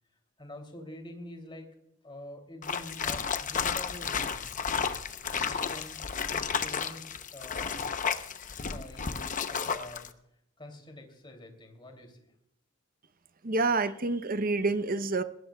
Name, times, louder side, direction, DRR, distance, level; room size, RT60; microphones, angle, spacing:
voice 1, 0.4-1.7 2.0-4.9 5.3-7.9 8.7-10.1 10.6-12.3, left 1 dB, 25° left, 4 dB, 2.8 m, -47 dB
sound 1, 2.6-10.1, left 6 dB, 40° left, 0.8 m, -32 dB
voice 2, 13.4-15.2, right 3 dB, 45° right, 12 dB, 0.8 m, -28 dB
20.0 x 16.5 x 2.3 m, 0.79 s
head